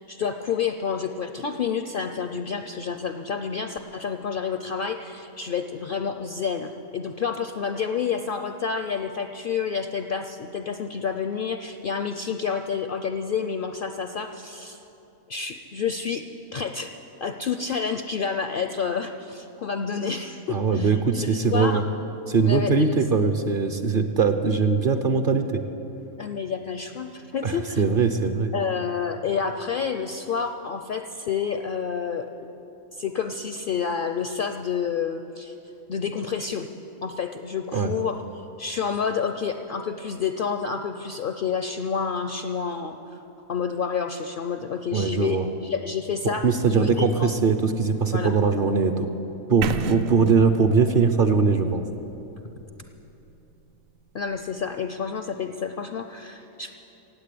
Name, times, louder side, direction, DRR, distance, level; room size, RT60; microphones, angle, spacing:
voice 1, 0.0-14.8 15.3-16.3 16.5-16.9 17.2-21.8 22.4-23.0 26.2-27.8 28.5-32.3 32.9-35.6 35.9-36.7 37.0-38.2 38.6-43.2 43.5-46.5 46.7-47.3 48.1-48.3 54.1-56.7, left 6 dB, 60° left, 7 dB, 0.5 m, -29 dB
voice 2, 20.5-21.8 22.3-25.6 27.4-28.5 37.7-37.9 44.9-45.4 46.4-49.1 49.5-51.8, right 5 dB, 50° right, 8 dB, 0.7 m, -21 dB
sound 1, 49.6-53.6, right 7 dB, 80° right, 1.0 m, -34 dB
16.5 x 8.4 x 8.5 m, 3.0 s
omnidirectional pair, 1.4 m